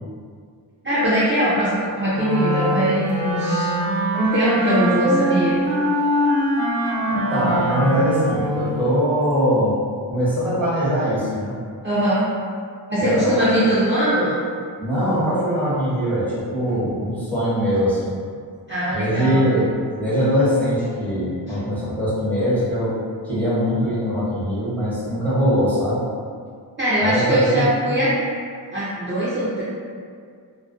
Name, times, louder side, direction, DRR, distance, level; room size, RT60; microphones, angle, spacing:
voice 1, 0.8-3.7 4.2-5.6 11.8-12.3 12.9-14.4 18.7-19.5 21.5-21.6 26.8-28.1 28.7-29.6, right 1 dB, 25° right, -12 dB, 0.5 m, -21 dB
Wind instrument woodwind instrument, 2.1-8.8, equal, 85° right, 0.8 m, -23 dB
voice 2, 7.1-9.7 10.1-11.5 13.0-13.4 14.8-18.2 18.9-23.0 23.2-26.0 27.0-28.0, equal, 5° left, -11 dB, 0.7 m, -21 dB
2.4 x 2.1 x 2.4 m, 2.1 s
wide cardioid pair, 140°, 44 cm